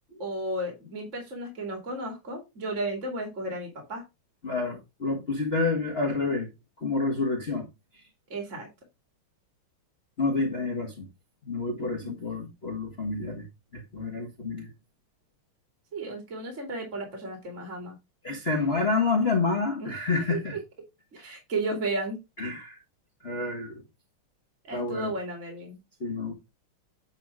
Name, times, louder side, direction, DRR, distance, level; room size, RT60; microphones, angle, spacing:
voice 1, 0.2-4.0 8.3-8.7 11.8-12.2 15.9-18.0 19.8-20.6 21.1-22.2 24.6-25.8, right 2 dB, 35° right, 2.8 m, -34 dB
voice 2, 4.4-6.5 6.8-7.7 7.9-8.0 10.2-11.1 11.4-13.5 13.7-14.7 18.2-20.6 22.4-22.8 23.2-23.8 24.7-25.1 26.0-26.3, left 3 dB, 30° left, 1.5 m, -28 dB
10.0 x 3.7 x 4.7 m
omnidirectional pair, 2.4 m